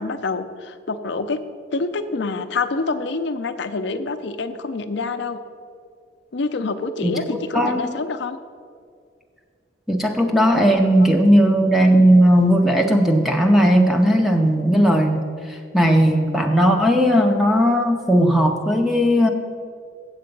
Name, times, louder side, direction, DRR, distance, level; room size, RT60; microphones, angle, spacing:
voice 1, 0.0-1.4 1.7-5.4 6.3-8.4, left 3 dB, 60° left, 10 dB, 0.5 m, -26 dB
voice 2, 7.5-7.9 9.9-19.3, equal, ahead, 2 dB, 0.5 m, -17 dB
7.8 x 7.5 x 5.2 m, 2.1 s
head